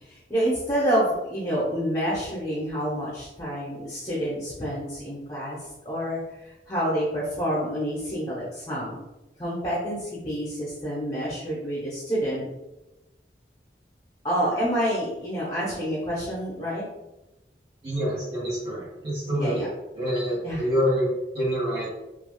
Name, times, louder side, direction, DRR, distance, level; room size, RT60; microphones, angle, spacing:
voice 1, 0.1-5.6 5.9-6.2 6.7-9.0 9.4-12.5 14.2-16.8 19.4-19.7 20.4-20.7, equal, 20° left, -7 dB, 0.7 m, -28 dB
voice 2, 17.8-19.7 19.9-21.9, equal, 30° right, -7 dB, 1.5 m, -26 dB
3.3 x 2.4 x 2.2 m, 0.99 s
head